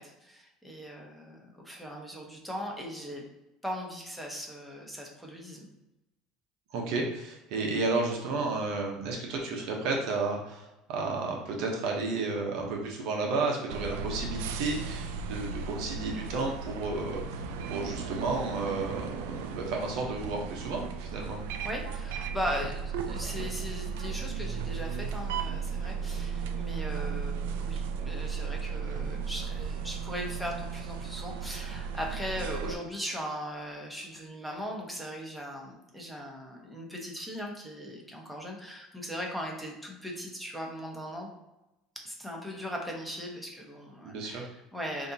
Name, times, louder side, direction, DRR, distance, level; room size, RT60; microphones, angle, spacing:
voice 1, 0.0-3.2 3.6-5.7 21.6-41.3 42.0-45.1, equal, ahead, -1 dB, 1.1 m, -39 dB
voice 2, 6.7-21.4 44.0-44.4, right 3 dB, 70° right, 0 dB, 1.0 m, -32 dB
sound 1, 13.7-32.7, right 6 dB, 85° right, 0.4 m, -35 dB
6.4 x 2.9 x 2.8 m, 0.96 s
supercardioid pair, 105°, 0 cm